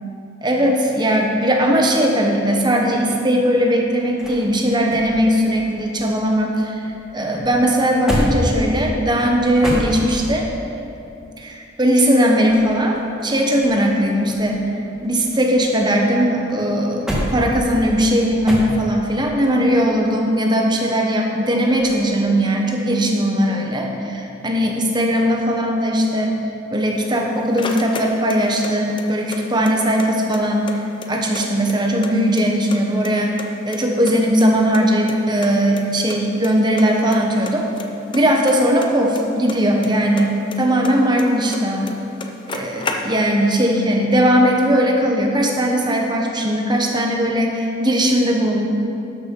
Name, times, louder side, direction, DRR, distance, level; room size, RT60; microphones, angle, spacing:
voice 1, 0.4-6.8 7.1-10.5 11.4-14.6 15.0-26.4 26.7-30.6 31.1-37.6 38.1-42.0 42.5-48.7, equal, 20° right, 0 dB, 1.1 m, -19 dB
sound 1, 3.4-6.6 6.8-10.5 12.2-14.0 14.3-16.0 16.5-19.1 21.7-22.1, equal, 5° right, 1.5 m, -28 dB
sound 2, 27.0-28.7 29.0-30.1 30.3-30.4 30.7-32.1 32.4-33.1 33.4-34.8 35.1-35.2 35.4-35.5 35.8-35.9 36.1-36.5 36.8-37.2 37.5-39.9 40.2-41.6 41.9-42.0 42.2-43.4, left 3 dB, 25° left, 0.6 m, -31 dB
12.5 x 6.3 x 5.5 m, 2.7 s
head